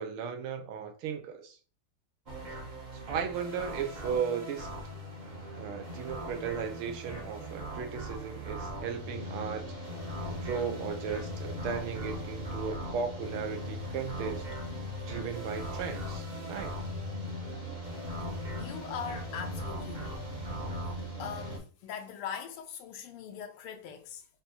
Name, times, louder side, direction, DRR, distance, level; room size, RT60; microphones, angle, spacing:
voice 1, 0.0-1.6 2.5-2.6 2.9-4.7 5.5-9.6 10.3-14.4 15.1-16.7, right 6 dB, 80° right, 1.6 m, -36 dB
sound 1, 2.3-21.6, equal, 35° right, 0.7 m, -39 dB
voice 2, 18.6-20.2 20.8-24.3, left 7 dB, 85° left, 1.5 m, -41 dB
5.5 x 2.8 x 2.8 m
omnidirectional pair, 2.4 m